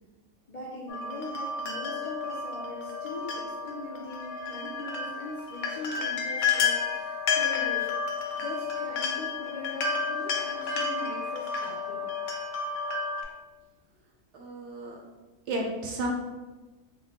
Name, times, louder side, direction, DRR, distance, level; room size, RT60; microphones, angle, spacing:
voice 1, 0.5-12.1, left 1 dB, 60° left, -7 dB, 0.4 m, -41 dB
sound 1, 0.9-13.2, left 5 dB, 85° left, 1.0 m, -31 dB
voice 2, 14.3-15.0 15.5-16.1, right 2 dB, 65° right, 0 dB, 0.8 m, -33 dB
3.9 x 2.2 x 3.5 m, 1.2 s
omnidirectional pair, 1.5 m